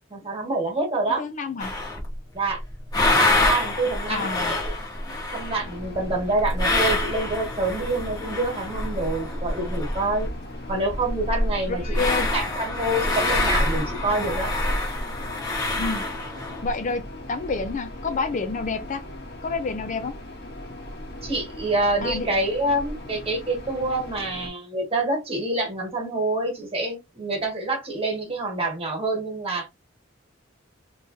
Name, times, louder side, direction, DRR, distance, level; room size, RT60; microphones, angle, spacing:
voice 1, 0.1-1.2 2.3-2.6 3.3-4.6 4.9-10.3 10.7-14.5 21.2-29.8, right 2 dB, 30° right, 1.6 m, -27 dB
voice 2, 1.2-1.7 4.1-4.6 11.7-12.3 15.8-16.0 16.6-17.0 17.3-19.0 19.4-20.1 22.0-22.3, left 4 dB, 40° left, 0.5 m, -28 dB
sound 1, 1.6-2.2 2.6-10.4 10.6-10.7 11.0-16.7, left 2 dB, 20° left, 1.2 m, -26 dB
sound 2, 5.4-24.5, left 1 dB, 55° left, 1.4 m, -37 dB
3.9 x 3.0 x 2.6 m
head